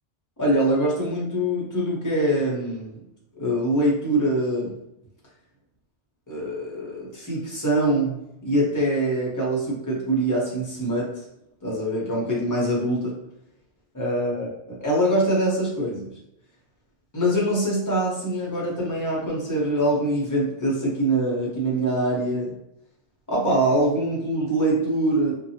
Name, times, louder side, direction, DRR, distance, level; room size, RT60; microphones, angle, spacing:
voice 1, 0.4-3.0 3.4-4.7 6.3-8.2 8.4-11.2 11.6-13.1 13.9-16.1 17.1-22.5 23.3-25.3, right 1 dB, 20° left, -5 dB, 0.7 m, -24 dB
2.7 x 2.2 x 2.7 m, 0.82 s
omnidirectional pair, 1.1 m